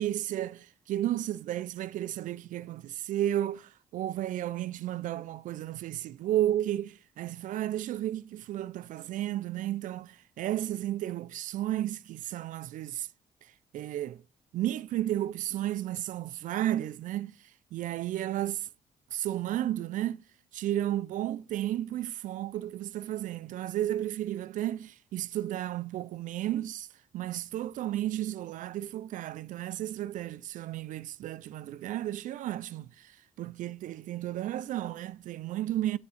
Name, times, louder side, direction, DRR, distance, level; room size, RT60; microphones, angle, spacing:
voice 1, 0.0-13.1 13.4-14.2 14.5-18.7 19.1-20.2 20.5-26.9 27.1-36.0, right 13 dB, 70° right, 0.4 m, -33 dB
9.0 x 6.1 x 4.2 m
cardioid pair, 85°, 14 cm